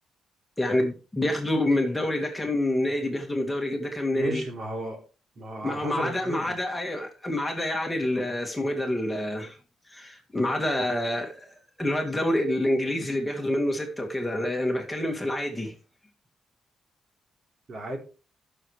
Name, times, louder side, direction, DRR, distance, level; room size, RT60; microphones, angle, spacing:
voice 1, 0.6-4.4 5.6-9.6 9.9-15.7, left 1 dB, 5° left, 2.2 m, -27 dB
voice 2, 4.1-5.0 5.4-6.5 17.7-18.0, right 2 dB, 45° right, 3.2 m, -33 dB
16.5 x 6.6 x 3.3 m
cardioid pair, 140°, 0 cm